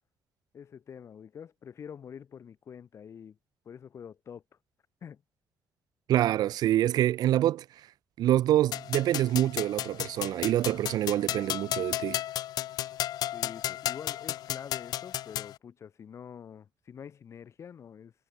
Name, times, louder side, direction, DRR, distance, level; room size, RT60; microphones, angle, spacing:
voice 1, 0.5-3.4 3.6-4.4 5.0-5.2 13.3-18.1, left 7 dB, 45° left, 6.3 m, -46 dB
voice 2, 6.1-7.6 8.2-12.2, right 13 dB, 85° right, 1.1 m, -26 dB
sound 1, 8.7-15.5, left 13 dB, 85° left, 1.5 m, -34 dB
cardioid pair, 155°, 7 cm